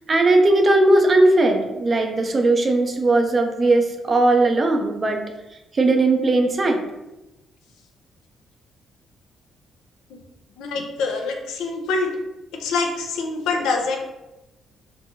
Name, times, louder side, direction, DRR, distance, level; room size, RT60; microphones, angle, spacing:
voice 1, 0.1-5.2 5.7-6.8, right 2 dB, 40° right, 4 dB, 0.4 m, -18 dB
voice 2, 10.6-12.2 12.6-14.0, left 4 dB, 80° left, 2 dB, 0.4 m, -25 dB
2.9 x 2.2 x 2.7 m, 0.99 s
supercardioid pair, 60°, 0 cm